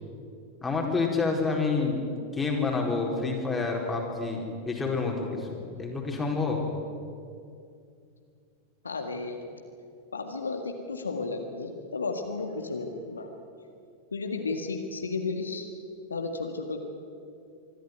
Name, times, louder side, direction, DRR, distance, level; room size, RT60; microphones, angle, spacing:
voice 1, 0.6-2.0 2.3-6.6, left 4 dB, 10° left, -1 dB, 4.4 m, -28 dB
voice 2, 8.8-9.4 10.1-13.3 14.1-15.7 16.1-16.8, left 3 dB, 75° left, 4 dB, 1.9 m, -33 dB
25.0 x 13.5 x 9.5 m, 2.4 s
figure-of-eight pair, 90°, 0 cm